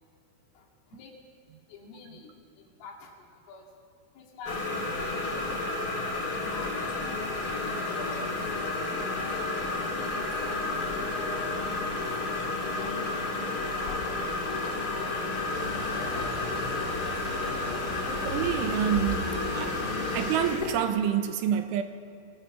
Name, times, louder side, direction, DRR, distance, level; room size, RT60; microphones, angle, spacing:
voice 1, 1.7-2.3 2.6-3.1 3.5-3.6 4.2-4.6 5.0-5.6 6.5-8.8 9.2-10.9 11.3-12.0 12.4-12.5 13.6-14.4 14.6-15.0 15.9-16.5, left 4 dB, 80° left, 0 dB, 5.3 m, -48 dB
sound 1, 4.4-20.8, left 3 dB, 35° left, 1.6 m, -31 dB
sound 2, 15.5-20.5, right 1 dB, 35° right, 2.6 m, -39 dB
voice 2, 18.1-19.3 19.5-19.8 20.1-21.8, right 9 dB, 80° right, 8 dB, 3.4 m, -27 dB
27.5 x 23.0 x 6.1 m, 2.4 s
omnidirectional pair, 5.7 m